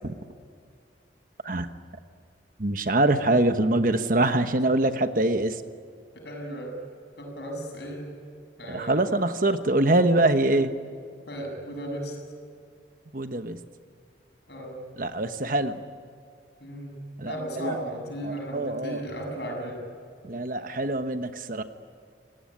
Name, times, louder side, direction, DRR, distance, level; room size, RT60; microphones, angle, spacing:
voice 1, 2.6-5.6 8.7-10.7 13.1-13.6 15.0-15.8 17.2-17.8 18.2-19.0 20.2-21.6, right 2 dB, 50° right, 9 dB, 1.1 m, -24 dB
voice 2, 6.1-6.8 7.2-8.1 8.6-9.1 11.3-12.2 14.5-14.8 16.6-17.0 17.3-19.9, equal, 65° left, 2 dB, 7.3 m, -35 dB
28.5 x 18.0 x 9.9 m, 2.2 s
head